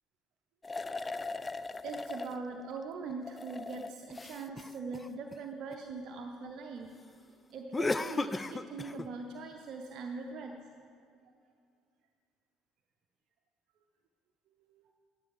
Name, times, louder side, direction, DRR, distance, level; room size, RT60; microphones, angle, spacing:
sound 1, 0.6-2.4 3.1-5.7 7.7-9.1, left 3 dB, 20° left, 0.3 m, -37 dB
voice 1, 1.8-6.9 7.5-10.6, right 4 dB, 50° right, 3 dB, 0.6 m, -41 dB
9.9 x 9.7 x 5.0 m, 2.3 s
figure-of-eight pair, 55°, 0 cm